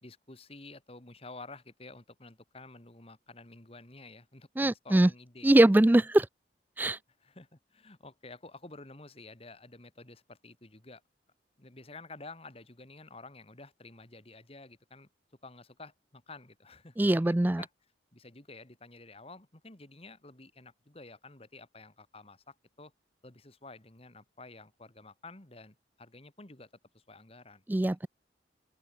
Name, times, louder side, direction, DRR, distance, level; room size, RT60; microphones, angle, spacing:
voice 1, 0.0-5.5 7.2-11.0 11.6-15.1 15.4-17.7 18.1-22.9 23.2-26.7 26.9-27.6 27.9-28.0, left 3 dB, 30° left, 2.1 m, -50 dB
voice 2, 4.6-5.1 5.4-6.3 6.8-7.0 17.0-17.6 27.7-28.1, right 1 dB, 10° right, 0.3 m, -22 dB
open air
head